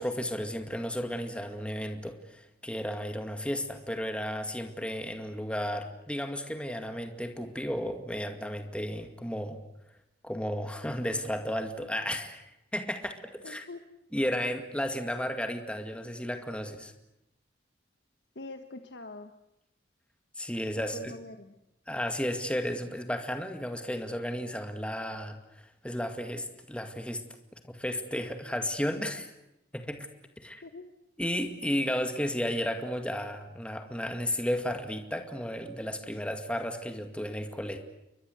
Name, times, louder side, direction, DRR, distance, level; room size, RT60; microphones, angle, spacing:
voice 1, 0.0-9.6 10.2-13.6 14.1-16.9 20.4-21.1 21.9-27.2 27.7-29.3 29.7-30.1 30.4-30.6 31.2-37.8, equal, 5° left, 6 dB, 2.1 m, -33 dB
voice 2, 13.4-13.8 18.3-19.3 20.8-21.5 30.6-30.9, left 2 dB, 70° left, 7 dB, 1.4 m, -44 dB
29.5 x 23.0 x 8.1 m, 0.88 s
head